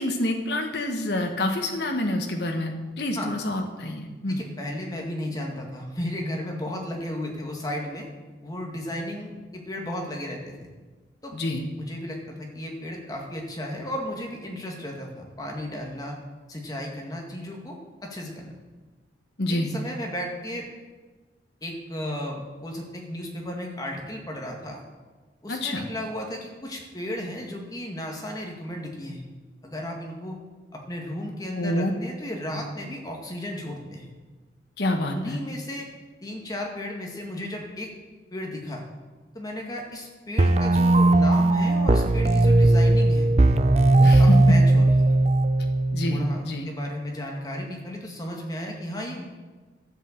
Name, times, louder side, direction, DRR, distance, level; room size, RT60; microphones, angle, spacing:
voice 1, 0.0-4.4 11.3-11.6 19.4-19.7 25.5-25.9 31.6-31.9 32.5-32.6 34.8-35.4 44.0-44.5 45.9-46.7, left 1 dB, 60° left, 3 dB, 1.2 m, -27 dB
voice 2, 4.3-8.1 8.4-10.7 11.2-11.3 11.8-16.2 16.5-18.5 19.5-20.7 21.6-24.8 25.4-29.3 29.6-30.4 30.7-34.1 35.1-35.9 36.2-37.9 38.3-38.8 39.3-43.3 43.9-45.2 46.1-49.2, left 1 dB, 20° left, 0 dB, 1.9 m, -34 dB
sound 1, 40.4-46.4, right 2 dB, 35° right, 0.6 m, -18 dB
12.5 x 7.8 x 7.3 m, 1.3 s
head